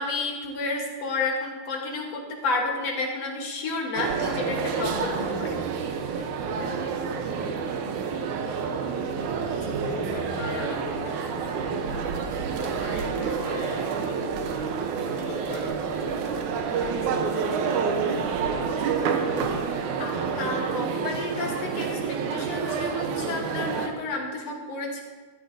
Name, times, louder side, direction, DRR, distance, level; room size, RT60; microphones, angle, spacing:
voice 1, 0.0-5.6 20.0-25.0, left 3 dB, 65° left, 0 dB, 2.4 m, -31 dB
sound 1, 4.0-23.9, right 6 dB, 85° right, 2.4 m, -28 dB
voice 2, 9.7-11.6 12.4-14.2 15.2-17.5 17.8-18.1, left 3 dB, 90° left, -1 dB, 2.8 m, -39 dB
14.0 x 12.5 x 2.7 m, 1.3 s
omnidirectional pair, 3.3 m